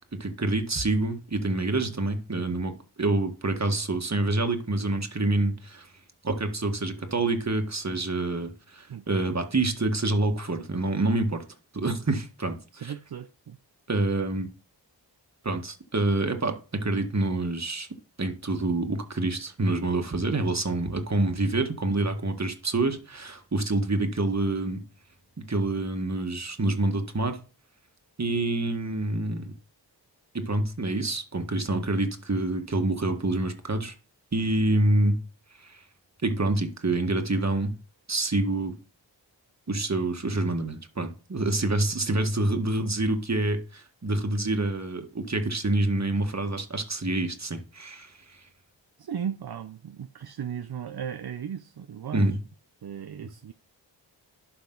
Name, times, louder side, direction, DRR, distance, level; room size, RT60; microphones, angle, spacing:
voice 1, 0.1-2.7 3.0-5.9 6.2-11.4 11.7-12.9 13.9-14.5 15.4-17.9 18.2-24.8 25.5-27.4 28.2-29.5 30.3-33.9 34.3-35.2 35.6-35.8 36.2-37.7 38.1-38.8 39.7-48.4 52.1-52.4, right 2 dB, 35° right, 1.7 m, -27 dB
voice 2, 8.9-9.4 12.7-13.6 49.0-52.2 52.8-53.5, right 8 dB, 60° right, 0.7 m, -36 dB
12.0 x 5.2 x 4.0 m
cardioid pair, 40°, 44 cm